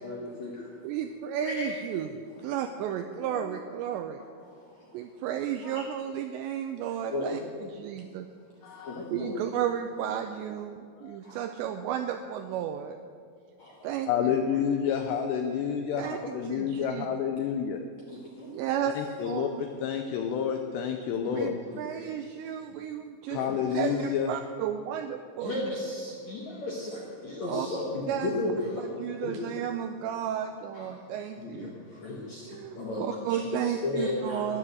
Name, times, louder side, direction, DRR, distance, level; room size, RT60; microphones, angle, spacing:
voice 1, 0.0-0.7 1.4-1.7 3.2-3.4 4.2-5.1 5.7-5.8 6.9-7.4 8.7-9.5 11.2-11.5 13.6-13.9 18.1-18.8 21.3-21.4 21.7-22.1 23.3-23.8 25.4-29.4 30.7-30.9 31.4-34.6, left 2 dB, 65° left, -3 dB, 1.7 m, -35 dB
voice 2, 0.8-2.1 2.4-4.2 4.9-7.4 7.7-8.3 9.1-13.0 13.8-14.3 16.0-17.1 18.5-19.6 21.3-25.7 27.5-27.7 28.1-28.3 28.8-31.7 32.5-34.6, right 9 dB, 85° right, 7 dB, 2.5 m, -33 dB
voice 3, 8.6-9.0 11.0-11.2 14.1-17.8 19.0-21.5 23.3-24.3, left 8 dB, 85° left, 5 dB, 2.4 m, -29 dB
12.5 x 11.0 x 7.8 m, 2.2 s
omnidirectional pair, 5.7 m